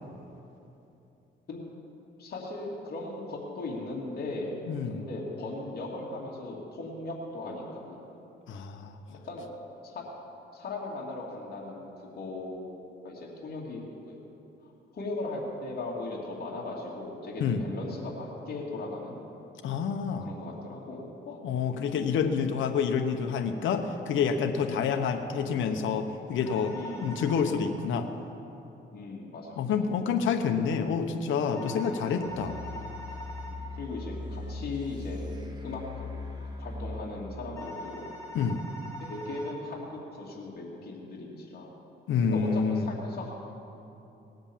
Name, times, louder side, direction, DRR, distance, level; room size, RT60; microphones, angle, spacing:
voice 1, 2.2-8.0 9.2-9.5 9.9-10.0 10.5-14.2 14.9-19.2 20.2-21.4 24.7-25.0 26.7-27.2 28.9-29.7 31.7-31.9 33.5-35.2 35.6-36.1 36.4-38.1 39.0-41.7 42.3-43.3, left 2 dB, 50° left, -4 dB, 2.8 m, -38 dB
voice 2, 4.7-5.0 8.5-9.2 17.4-17.6 19.6-20.3 21.3-28.1 29.6-32.6 38.3-38.6 42.1-42.9, left 6 dB, 75° left, 6 dB, 1.0 m, -28 dB
sound 1, 26.4-27.5 31.5-33.5 37.6-39.5, equal, 15° left, 2.8 m, -42 dB
sound 2, 32.2-37.2, left 3 dB, 20° right, 2.3 m, -39 dB
19.0 x 8.0 x 7.3 m, 2.9 s
cardioid pair, 90°, 20 cm